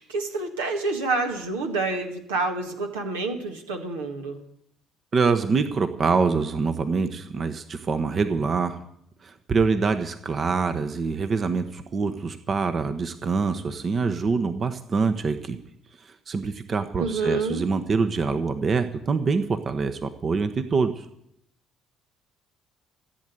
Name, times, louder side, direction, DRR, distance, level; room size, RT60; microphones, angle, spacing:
voice 1, 0.0-4.4 17.0-17.7, right 3 dB, 85° right, 2 dB, 1.8 m, -28 dB
voice 2, 5.1-8.8 9.2-15.6 16.0-21.1, right 4 dB, 45° right, 8 dB, 1.1 m, -25 dB
15.0 x 8.6 x 9.3 m, 0.73 s
hypercardioid pair, 50°, 0 cm